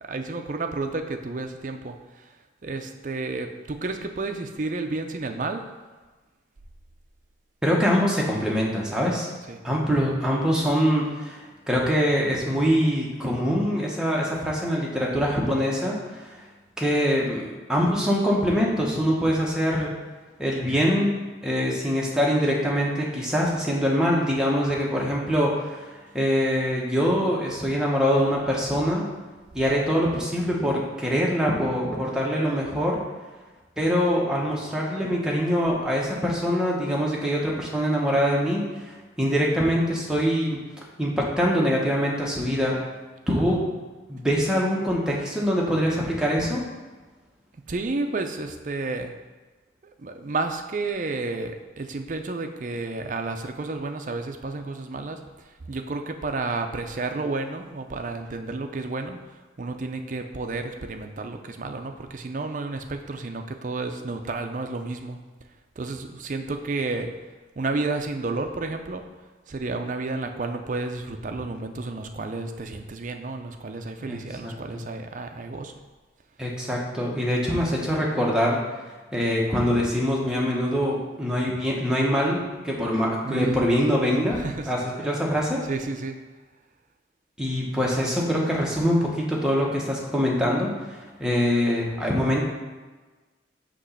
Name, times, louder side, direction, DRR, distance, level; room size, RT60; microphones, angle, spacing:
voice 1, 0.0-5.6 9.5-9.6 43.4-43.5 47.7-49.1 49.8-65.2 65.8-67.1 67.6-69.0 69.5-75.7 83.2-83.6 84.3-84.7 85.0-85.1 85.6-86.2, right 3 dB, 45° right, 6 dB, 0.5 m, -31 dB
voice 2, 7.6-9.3 9.6-16.4 16.8-19.9 20.4-29.1 29.5-33.0 33.8-38.9 39.2-40.6 41.0-42.8 43.3-43.6 44.1-46.6 74.1-74.8 76.4-78.6 79.1-84.4 84.7-85.6 87.4-92.5, equal, 5° right, -3 dB, 0.9 m, -24 dB
6.3 x 3.0 x 5.6 m, 1.3 s
head